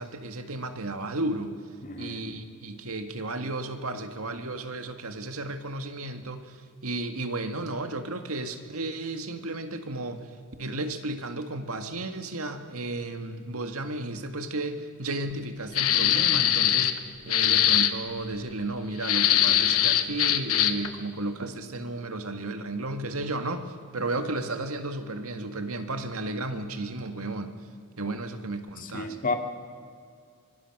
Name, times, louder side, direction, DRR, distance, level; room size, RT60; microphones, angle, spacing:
voice 1, 0.0-1.5 2.0-6.6 6.8-10.2 10.6-27.5 28.0-29.2, right 2 dB, 80° right, 7 dB, 1.8 m, -33 dB
voice 2, 1.8-2.2 28.8-29.3, left 3 dB, 40° left, 5 dB, 2.1 m, -31 dB
sound 1, 15.7-17.0 17.3-17.9 19.0-20.9, left 11 dB, 85° left, 1.2 m, -22 dB
25.0 x 22.0 x 6.1 m, 2.2 s
head